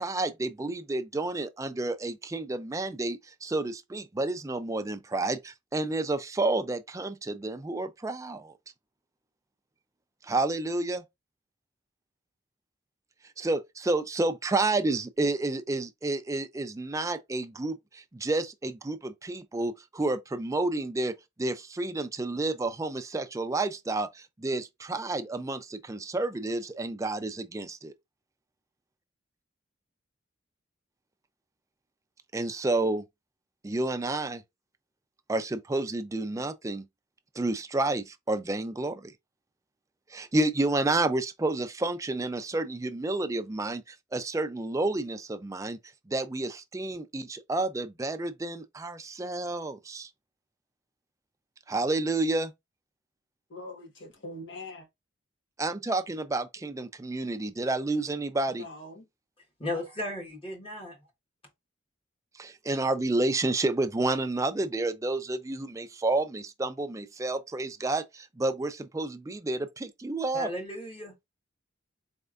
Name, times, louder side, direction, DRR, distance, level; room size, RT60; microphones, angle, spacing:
voice 1, 0.0-8.5 10.2-11.0 13.4-27.9 32.3-33.0 33.6-34.4 35.3-36.8 37.4-39.1 40.1-45.8 46.1-50.1 51.7-52.5 55.6-58.6 62.4-70.5, right 2 dB, 15° right, 0.4 m, -30 dB
voice 2, 53.5-54.9 58.5-59.1, left 1 dB, 70° left, 1.6 m, -43 dB
voice 3, 59.6-61.0 70.3-71.1, left 1 dB, 30° left, 1.4 m, -35 dB
4.2 x 3.4 x 2.5 m
head